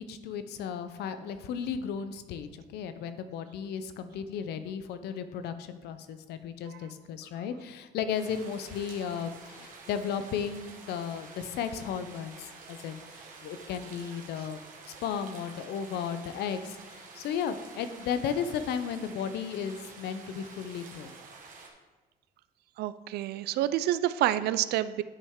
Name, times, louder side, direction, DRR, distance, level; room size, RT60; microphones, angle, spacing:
voice 1, 0.0-14.6 15.0-21.1, left 7 dB, 75° left, 10 dB, 0.6 m, -35 dB
sound 1, 8.1-21.7, right 4 dB, 50° right, 1.5 m, -49 dB
voice 2, 22.8-25.0, right 13 dB, 70° right, 14 dB, 0.4 m, -28 dB
9.6 x 5.4 x 3.6 m, 1.2 s
cardioid pair, 110°, 17 cm